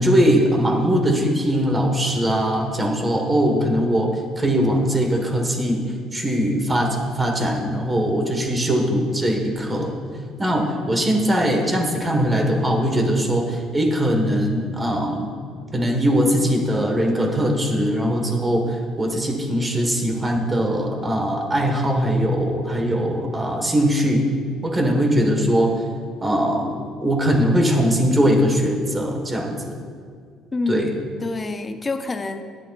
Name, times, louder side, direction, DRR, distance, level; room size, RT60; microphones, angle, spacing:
voice 1, 0.0-5.8 6.1-10.0 10.4-15.3 15.7-24.2 24.6-25.7 26.2-29.8 30.7-30.9, equal, 15° right, 2 dB, 1.4 m, -21 dB
voice 2, 30.5-32.4, left 3 dB, 20° left, 8 dB, 0.6 m, -27 dB
15.5 x 11.0 x 2.4 m, 2.1 s
cardioid pair, 145°, 0 cm